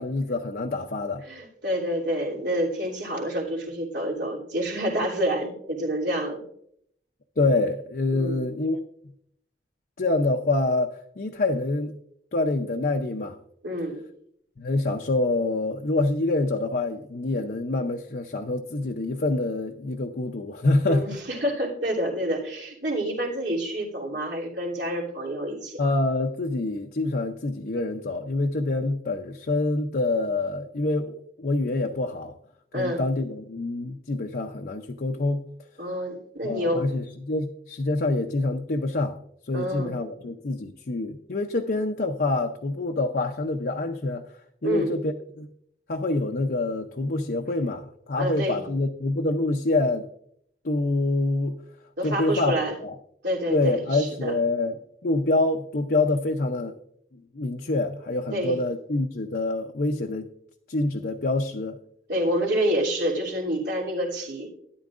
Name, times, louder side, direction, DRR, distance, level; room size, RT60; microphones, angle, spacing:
voice 1, 0.0-1.2 7.4-8.8 10.0-10.9 11.2-11.9 12.3-13.4 14.6-21.2 25.8-32.3 32.7-35.5 36.4-39.2 39.5-44.2 44.6-45.5 45.9-50.1 50.6-51.6 52.0-52.5 52.8-52.9 53.5-54.8 55.0-56.8 57.3-60.3 60.7-61.8, left 2 dB, 55° left, 3 dB, 0.6 m, -26 dB
voice 2, 1.2-6.4 8.1-8.4 13.6-14.0 20.8-25.8 32.7-33.0 35.8-36.9 39.5-40.0 44.6-45.0 48.2-48.7 52.0-52.8 53.2-54.4 58.3-58.6 62.1-64.5, equal, 75° right, -3 dB, 3.1 m, -28 dB
12.5 x 11.0 x 2.5 m, 0.70 s
head